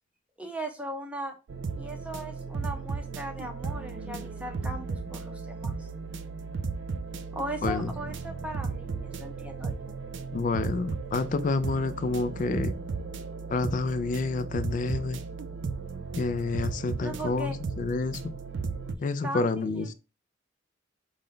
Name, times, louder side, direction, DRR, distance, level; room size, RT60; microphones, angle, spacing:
voice 1, 0.4-1.4 1.8-5.9 7.3-10.0 17.0-17.6 19.2-19.9, right 1 dB, 5° right, 0.6 m, -38 dB
sound 1, 1.5-19.0, right 4 dB, 65° right, 0.4 m, -35 dB
voice 2, 10.3-12.7 13.5-15.2 16.2-18.3 19.0-19.9, left 3 dB, 40° left, 0.3 m, -29 dB
5.0 x 2.2 x 3.6 m
head